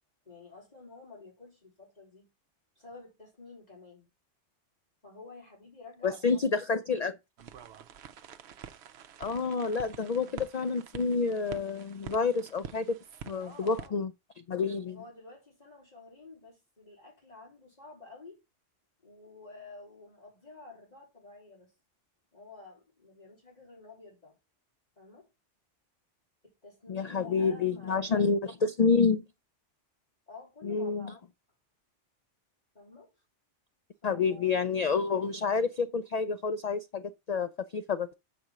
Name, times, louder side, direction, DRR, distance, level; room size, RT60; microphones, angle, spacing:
voice 1, 0.3-2.3 2.8-4.1 5.0-6.8 13.3-14.0 14.7-18.4 19.0-21.7 22.3-24.4 25.0-25.3 26.4-28.3 30.3-31.1 32.8-33.1 34.0-34.6, left 3 dB, 35° left, 3.4 m, -51 dB
voice 2, 6.0-7.1 9.2-13.0 13.3-14.1 14.5-15.0 26.9-29.2 30.6-31.1 34.0-38.1, left 5 dB, 80° left, 0.3 m, -28 dB
sound 1, 7.4-13.9, right 8 dB, 65° right, 0.9 m, -47 dB
6.5 x 4.2 x 5.9 m
omnidirectional pair, 1.2 m